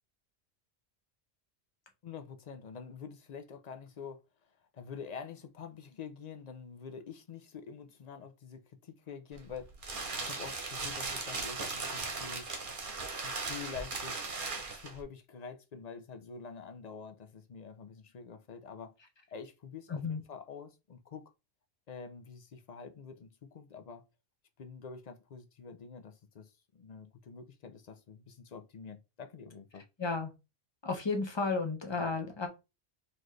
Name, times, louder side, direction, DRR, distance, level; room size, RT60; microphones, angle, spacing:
voice 1, 2.0-4.2 4.7-9.7 10.1-12.5 13.2-14.3 14.6-18.9 19.3-21.2 21.9-24.0 24.6-29.9, left 6 dB, 50° left, 0.5 m, -47 dB
sound 1, 9.3-15.0, right 3 dB, 50° right, 1.1 m, -38 dB
voice 2, 19.9-20.2 30.0-30.3 30.8-32.5, left 4 dB, 25° left, 0.9 m, -33 dB
4.2 x 3.1 x 3.2 m
omnidirectional pair, 1.1 m